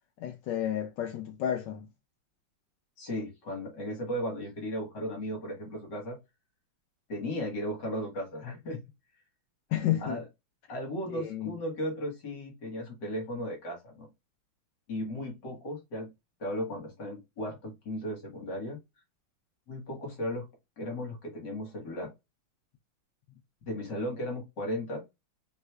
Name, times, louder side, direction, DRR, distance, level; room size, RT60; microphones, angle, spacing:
voice 1, 0.2-1.9 9.7-10.2 11.1-11.5, left 11 dB, 70° left, 1.1 m, -31 dB
voice 2, 3.0-6.2 7.1-8.8 10.0-10.2 10.7-14.1 14.9-16.1 16.4-18.8 19.7-20.5 20.8-22.1 23.7-25.0, equal, 55° left, 2.2 m, -36 dB
5.5 x 3.4 x 2.4 m
omnidirectional pair, 2.3 m